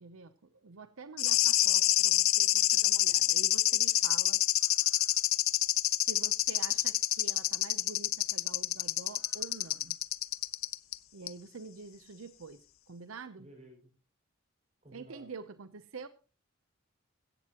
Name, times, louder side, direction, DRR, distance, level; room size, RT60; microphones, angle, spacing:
voice 1, 0.0-4.4 6.1-10.0 11.1-13.5 14.9-16.1, right 4 dB, 80° right, 12 dB, 0.7 m, -47 dB
sound 1, 1.2-11.0 11.3-11.4, left 15 dB, 80° left, 0.6 m, -27 dB
voice 2, 13.4-13.9 14.8-15.3, right 1 dB, 30° right, 2 dB, 5.6 m, -54 dB
16.0 x 15.0 x 2.9 m, 0.34 s
head